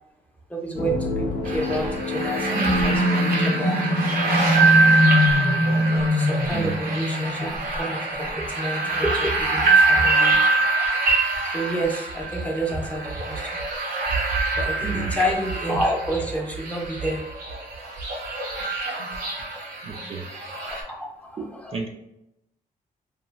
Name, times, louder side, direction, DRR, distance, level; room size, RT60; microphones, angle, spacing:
voice 1, 0.5-3.9 5.9-7.5 7.8-10.4 11.5-13.5 14.6-17.2 20.3-21.0 21.3-21.8, right 1 dB, 10° left, 0 dB, 0.6 m, -29 dB
sound 1, 0.7-8.5, left 1 dB, 70° left, 0.5 m, -23 dB
sound 2, 1.4-20.8, right 3 dB, 80° right, 0.7 m, -24 dB
voice 2, 14.8-15.2 19.9-20.2 21.4-21.9, right 4 dB, 40° right, 2 dB, 0.4 m, -31 dB
2.9 x 2.4 x 2.3 m, 0.85 s
cardioid pair, 85°, 15 cm